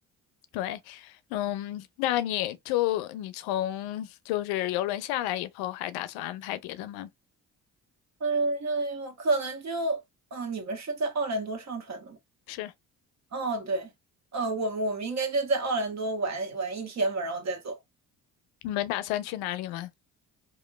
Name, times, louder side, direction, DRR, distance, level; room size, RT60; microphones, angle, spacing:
voice 1, 0.5-7.1 12.5-12.7 18.6-19.9, left 14 dB, 75° left, 0.5 m, -31 dB
voice 2, 8.2-10.0 10.3-12.2 13.3-13.9 14.3-17.8, right 2 dB, 45° right, 1.1 m, -29 dB
2.9 x 2.2 x 2.2 m
hypercardioid pair, 60°, 38 cm